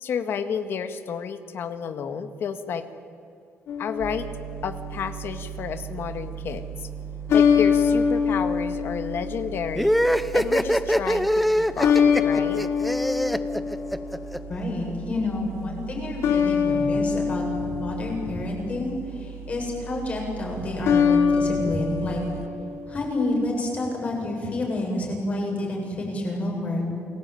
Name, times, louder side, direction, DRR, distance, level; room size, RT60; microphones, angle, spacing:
voice 1, 0.0-2.9 3.8-4.3 4.6-6.9 7.3-9.9 10.3-12.0 12.2-12.6, left 7 dB, 55° left, 10 dB, 1.7 m, -31 dB
sound 1, 3.7-5.0 7.3-9.8 11.8-14.4 16.2-18.7 20.8-23.2, left 6 dB, 70° left, 3.0 m, -24 dB
sound 2, 4.0-22.5, right 8 dB, 70° right, 1.5 m, -39 dB
sound 3, 9.7-14.4, equal, ahead, 0.7 m, -23 dB
voice 2, 14.5-22.2 22.9-26.8, left 1 dB, 30° left, 0 dB, 7.5 m, -29 dB
29.0 x 20.5 x 9.1 m, 2.5 s
cardioid pair, 165°, 5 cm